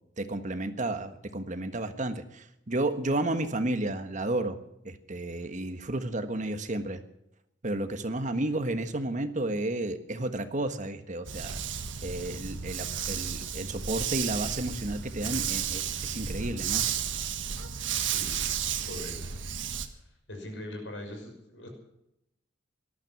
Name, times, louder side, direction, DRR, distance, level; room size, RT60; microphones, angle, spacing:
voice 1, 0.2-4.6 4.8-7.0 7.6-11.6 12.0-16.8, right 2 dB, 40° right, 8 dB, 1.5 m, -32 dB
Dog, 11.2-19.9, right 8 dB, 85° right, 1.5 m, -33 dB
voice 2, 18.1-18.5 18.8-19.4 19.8-21.7, left 1 dB, 85° left, 4 dB, 6.0 m, -42 dB
18.5 x 12.5 x 6.1 m, 0.82 s
head